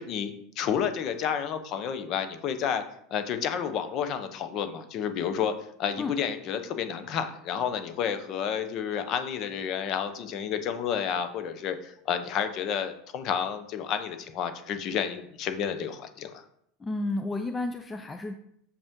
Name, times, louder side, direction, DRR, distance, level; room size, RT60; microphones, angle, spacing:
voice 1, 0.0-2.8 3.1-5.5 5.8-16.4, left 8 dB, 40° left, 9 dB, 0.7 m, -30 dB
voice 2, 16.8-18.4, left 2 dB, 15° left, 6 dB, 0.3 m, -31 dB
6.5 x 5.3 x 3.6 m, 0.70 s
supercardioid pair, 160°, 0 cm